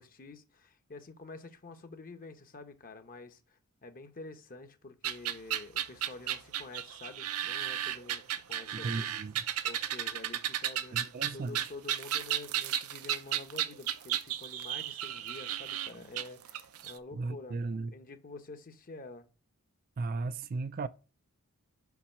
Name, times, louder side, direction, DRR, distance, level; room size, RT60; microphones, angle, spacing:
voice 1, 0.0-9.1 9.6-17.6 17.9-19.3, left 3 dB, 40° left, 1.0 m, -48 dB
sound 1, 5.0-16.9, right 11 dB, 80° right, 0.6 m, -34 dB
voice 2, 8.7-9.4 10.9-11.6 17.1-17.9 20.0-20.9, right 3 dB, 40° right, 0.4 m, -36 dB
5.8 x 5.4 x 6.0 m
head